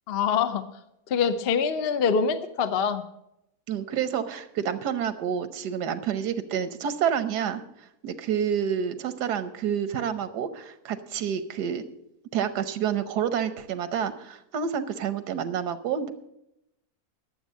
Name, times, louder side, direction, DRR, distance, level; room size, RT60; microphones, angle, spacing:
voice 1, 0.1-0.6 1.1-3.0, left 6 dB, 50° left, 10 dB, 0.7 m, -24 dB
voice 2, 3.7-7.6 8.0-11.8 12.3-16.1, right 8 dB, 85° right, 11 dB, 1.4 m, -28 dB
11.5 x 7.5 x 7.3 m, 0.83 s
omnidirectional pair, 1.7 m